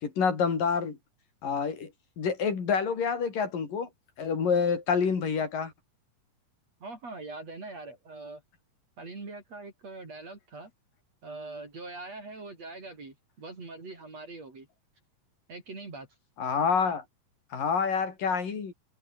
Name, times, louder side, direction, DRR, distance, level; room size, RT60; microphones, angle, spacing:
voice 1, 0.0-1.0 1.4-1.9 2.2-3.9 4.2-5.7 16.4-17.0 17.5-18.7, left 6 dB, 75° left, 5.9 m, -27 dB
voice 2, 6.8-8.4 9.0-10.7 11.2-14.7 15.5-16.1, right 3 dB, 50° right, 6.8 m, -42 dB
open air
omnidirectional pair, 3.9 m